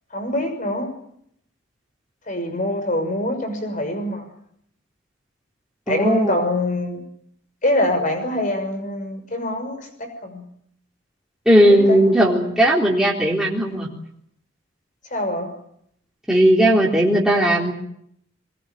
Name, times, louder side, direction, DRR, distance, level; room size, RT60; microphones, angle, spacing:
voice 1, 0.1-0.9 2.3-4.2 5.9-7.0 7.6-10.4 11.7-12.0 15.1-15.5, left 1 dB, 40° left, 7 dB, 6.2 m, -24 dB
voice 2, 5.9-6.3 11.5-13.9 16.3-17.7, right 1 dB, 5° right, -3 dB, 3.8 m, -16 dB
22.5 x 21.0 x 9.4 m, 0.72 s
head